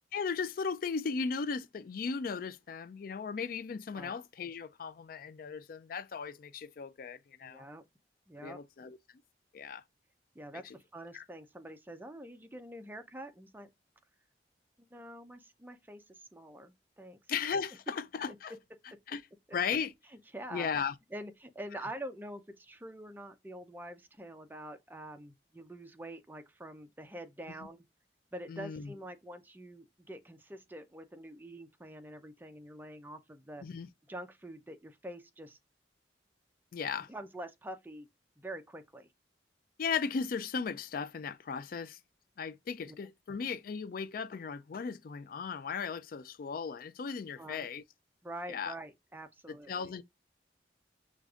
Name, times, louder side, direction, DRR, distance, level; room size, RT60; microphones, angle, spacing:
voice 1, 0.1-7.7 8.4-9.0 9.5-9.8 10.6-10.8 11.1-11.2 17.3-18.5 19.1-19.2 19.5-19.9 20.5-20.9 28.5-28.9 33.6-33.9 36.7-37.1 39.8-42.0 42.4-47.8 48.5-48.7 49.7-50.0, left 5 dB, 50° left, 0.4 m, -36 dB
voice 2, 7.4-7.8 8.3-8.6 10.3-13.7 14.9-17.2 18.3-18.4 20.3-20.7 21.1-27.8 28.3-33.6 34.1-35.6 37.1-38.1 38.4-39.1 42.9-43.0 47.4-47.7 48.2-49.9, right 1 dB, 10° right, 0.5 m, -46 dB
6.3 x 2.5 x 2.3 m
head